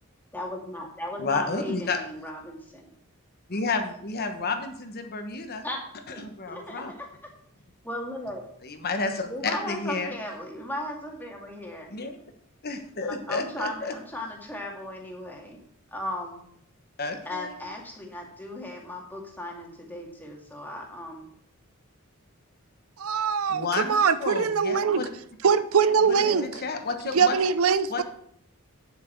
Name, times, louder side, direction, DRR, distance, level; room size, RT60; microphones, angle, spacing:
voice 1, 0.3-2.9 5.6-5.8 6.5-7.1 7.8-8.4 9.3-11.9 13.0-15.6 15.9-16.5 17.3-21.3 24.8-25.0 25.9-26.5, left 1 dB, 10° left, 2.2 m, -36 dB
voice 2, 1.2-2.0 3.5-5.6 6.2-6.9 8.6-10.1 11.9-12.2 12.6-13.9 17.0-17.6 23.5-23.9 24.2-25.1 26.1-27.4 27.9-28.0, left 4 dB, 50° left, 1.1 m, -31 dB
voice 3, 23.0-25.1 25.4-26.6 27.1-28.0, right 6 dB, 85° right, 0.6 m, -22 dB
9.4 x 7.5 x 4.6 m
head